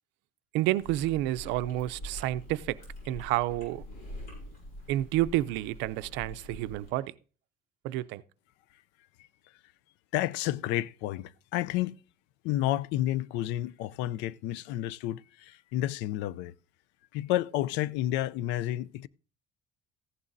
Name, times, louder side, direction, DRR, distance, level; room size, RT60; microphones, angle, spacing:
voice 1, 0.5-2.8 3.1-3.8 4.9-7.1 7.8-8.2, right 15 dB, 85° right, 0.5 m, -29 dB
Chewing mastication, 0.8-6.9, equal, 60° left, 7.1 m, -45 dB
voice 2, 10.1-12.0 12.4-16.5 17.1-19.1, left 14 dB, 85° left, 0.4 m, -30 dB
15.0 x 11.0 x 2.6 m
cardioid pair, 165°, 18 cm